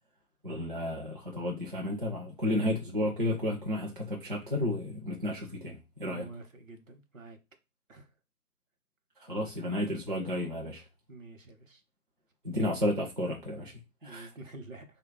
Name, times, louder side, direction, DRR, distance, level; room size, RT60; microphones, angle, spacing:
voice 1, 0.4-6.3 9.2-10.8 12.4-14.3, left 1 dB, 40° right, 0.5 m, -32 dB
voice 2, 6.1-7.4 7.9-8.1 11.1-11.8 12.5-12.7 14.0-14.8, right 2 dB, 60° right, 0.9 m, -47 dB
3.1 x 2.3 x 3.8 m
figure-of-eight pair, 155°, 44 cm